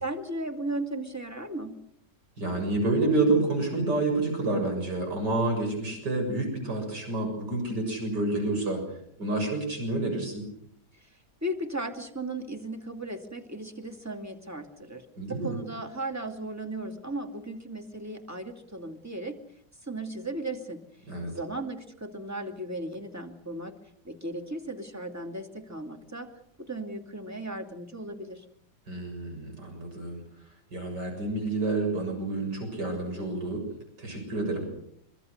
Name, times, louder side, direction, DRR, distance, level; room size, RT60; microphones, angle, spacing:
voice 1, 0.0-1.8 10.9-11.1 11.4-15.0 15.3-19.3 19.8-20.8 21.3-23.8 24.0-26.3 26.6-28.4, right 1 dB, 10° right, 4 dB, 2.4 m, -36 dB
voice 2, 2.4-8.8 9.2-10.5 15.2-15.6 21.1-21.3 28.9-30.2 30.7-33.7 34.0-34.6, right 2 dB, 80° right, 3 dB, 7.7 m, -29 dB
24.5 x 24.5 x 6.6 m, 0.70 s
omnidirectional pair, 1.8 m